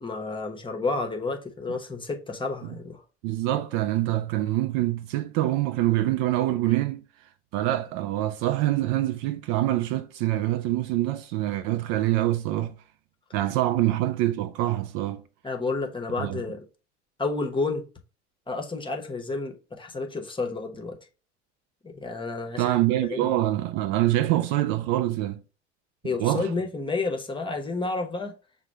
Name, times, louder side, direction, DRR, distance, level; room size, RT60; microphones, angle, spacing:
voice 1, 0.0-3.0 15.4-16.6 17.2-17.8 18.5-21.0 21.8-22.8 23.1-23.3 26.0-28.3, left 3 dB, 15° left, 0.9 m, -30 dB
voice 2, 3.2-7.0 7.5-12.7 13.3-15.2 16.2-16.4 22.6-25.4 26.2-26.5, right 15 dB, 55° right, 0.5 m, -25 dB
5.9 x 2.3 x 3.2 m
hypercardioid pair, 75°, 35 cm